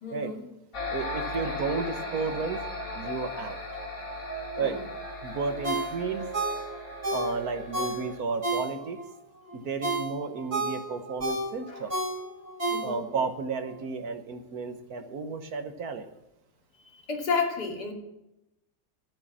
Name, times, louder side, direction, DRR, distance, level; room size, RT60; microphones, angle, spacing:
voice 1, 0.0-0.5 1.4-1.6 4.6-4.9 11.7-11.8 12.7-13.1 16.8-17.9, left 5 dB, 75° left, 0 dB, 3.4 m, -32 dB
sound 1, 0.7-8.2, left 1 dB, 55° left, 3.9 m, -37 dB
voice 2, 0.9-2.6 2.9-3.6 4.6-4.8 5.2-6.3 7.1-9.0 9.5-11.9 12.8-16.1, right 4 dB, 65° right, 8 dB, 1.6 m, -32 dB
Ringtone, 5.6-9.1 9.5-13.3 13.6-13.7, right 2 dB, 40° right, 4.6 m, -31 dB
13.0 x 8.7 x 7.2 m, 0.90 s
omnidirectional pair, 1.7 m